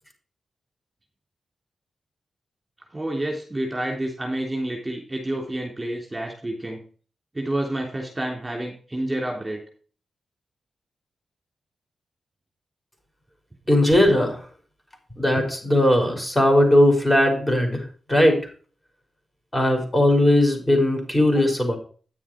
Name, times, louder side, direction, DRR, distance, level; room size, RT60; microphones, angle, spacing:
voice 1, 2.9-6.8 7.3-9.6, right 1 dB, 20° right, 0 dB, 3.4 m, -29 dB
voice 2, 13.7-14.4 15.2-17.8 18.1-18.4 19.5-21.8, left 1 dB, 15° left, 3 dB, 5.3 m, -18 dB
10.0 x 7.3 x 4.6 m, 0.40 s
cardioid pair, 60°, 0 cm